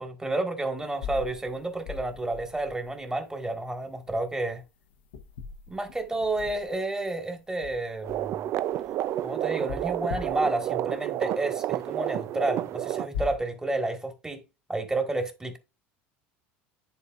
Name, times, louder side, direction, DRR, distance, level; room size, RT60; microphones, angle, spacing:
voice 1, 0.0-4.6 5.7-8.4 9.2-14.4 14.7-15.6, right 2 dB, 10° right, 1.8 m, -30 dB
sound 1, 0.9-3.1 4.0-4.3 4.7-7.1 7.5-9.0 9.7-10.8 13.1-13.4, left 6 dB, 85° left, 1.0 m, -40 dB
sound 2, 8.0-13.1, right 12 dB, 50° right, 0.4 m, -30 dB
10.5 x 4.1 x 2.5 m
supercardioid pair, 100°, 6 cm